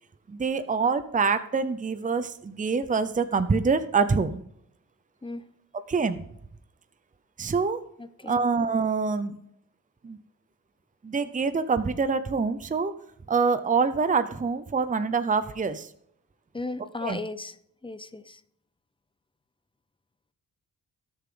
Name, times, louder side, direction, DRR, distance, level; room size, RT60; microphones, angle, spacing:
voice 1, 0.3-4.4 5.9-6.2 7.4-7.8 8.3-9.4 10.0-10.2 11.0-12.9 13.3-15.9 17.0-17.2, right 5 dB, 25° right, 11 dB, 0.7 m, -25 dB
voice 2, 8.0-8.4 16.5-17.6 17.8-18.4, left 2 dB, 15° left, 13 dB, 0.7 m, -36 dB
18.0 x 6.8 x 3.8 m, 0.70 s
wide cardioid pair, 115°, 33 cm